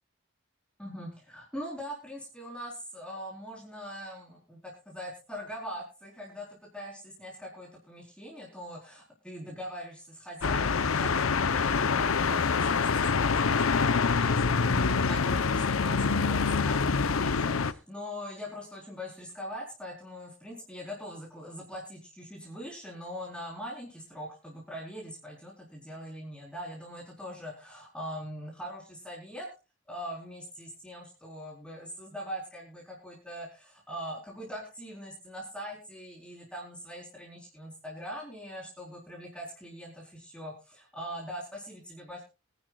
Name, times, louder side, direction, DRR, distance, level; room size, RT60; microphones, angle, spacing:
voice 1, 0.8-29.5 29.9-42.2, equal, 5° left, -3 dB, 4.0 m, -42 dB
sound 1, 10.4-17.7, left 5 dB, 90° left, 0.7 m, -26 dB
24.0 x 10.5 x 2.4 m, 0.29 s
head